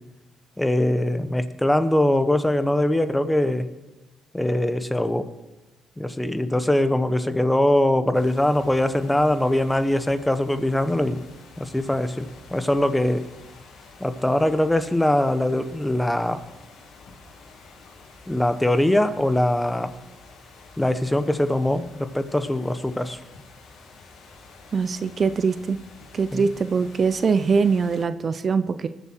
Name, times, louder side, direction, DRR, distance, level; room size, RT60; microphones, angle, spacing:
voice 1, 0.6-3.7 4.3-5.3 6.0-11.2 11.6-13.2 14.0-16.4 18.3-19.9 20.8-23.2 26.3-26.5, left 1 dB, 10° left, 10 dB, 1.0 m, -22 dB
sound 1, 8.1-28.0, left 3 dB, 75° left, 2.7 m, -48 dB
voice 2, 24.7-25.8 26.1-28.9, right 5 dB, 45° right, 13 dB, 0.6 m, -22 dB
20.0 x 7.3 x 4.6 m, 1.1 s
cardioid pair, 90°, 0 cm